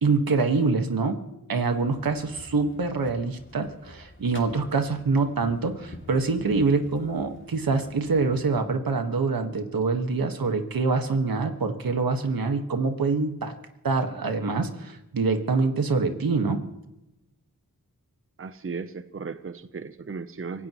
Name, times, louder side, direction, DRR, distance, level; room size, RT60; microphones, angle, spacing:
voice 1, 0.0-1.2 1.5-13.5 13.8-16.6, right 4 dB, 80° right, 6 dB, 1.7 m, -25 dB
sound 1, 1.8-8.6, left 2 dB, 35° left, 2.7 m, -48 dB
voice 2, 18.4-20.7, right 5 dB, 40° right, 11 dB, 0.8 m, -36 dB
25.5 x 17.5 x 3.1 m, 0.92 s
cardioid pair, 60°, 35 cm